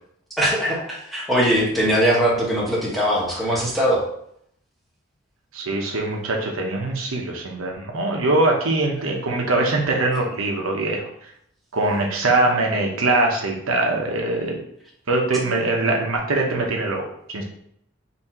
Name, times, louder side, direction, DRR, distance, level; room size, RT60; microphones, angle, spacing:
voice 1, 0.4-4.0, equal, ahead, -6 dB, 1.1 m, -21 dB
voice 2, 5.5-11.1 11.7-14.6 15.1-17.0 17.3-17.4, right 2 dB, 90° right, 0 dB, 0.9 m, -22 dB
4.2 x 2.7 x 4.2 m, 0.71 s
head